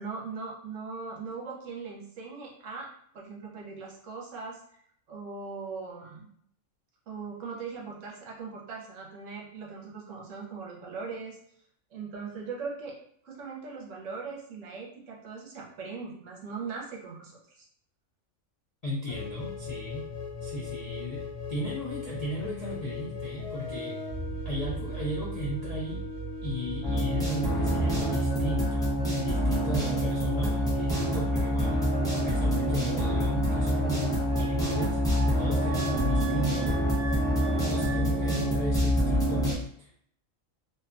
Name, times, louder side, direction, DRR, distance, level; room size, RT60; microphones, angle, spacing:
voice 1, 0.0-2.9 3.1-4.8 5.1-6.3 7.1-11.4 11.9-13.0 13.2-17.7, right 4 dB, 70° right, -2 dB, 1.0 m, -40 dB
voice 2, 18.8-20.1 20.4-21.2 21.5-24.0 24.4-26.0 26.4-35.0 35.4-36.7 37.5-39.5 39.8-39.9, left 1 dB, 70° left, -5 dB, 0.3 m, -35 dB
sound 1, 19.1-38.6, equal, 40° left, 0.9 m, -39 dB
sound 2, 26.8-39.5, equal, 5° left, 0.4 m, -26 dB
2.7 x 2.1 x 2.4 m, 0.65 s
omnidirectional pair, 1.4 m